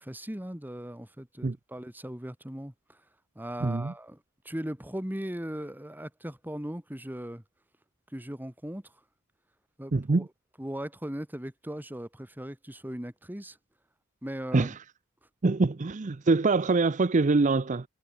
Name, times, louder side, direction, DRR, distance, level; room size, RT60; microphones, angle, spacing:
voice 1, 0.0-3.0 3.3-4.2 4.4-7.4 8.1-8.9 9.8-10.3 10.6-13.6 14.2-14.7, equal, 10° right, 1.7 m, -38 dB
voice 2, 3.6-3.9 9.9-10.2 14.5-14.7 15.4-17.8, right 3 dB, 40° right, 0.5 m, -24 dB
head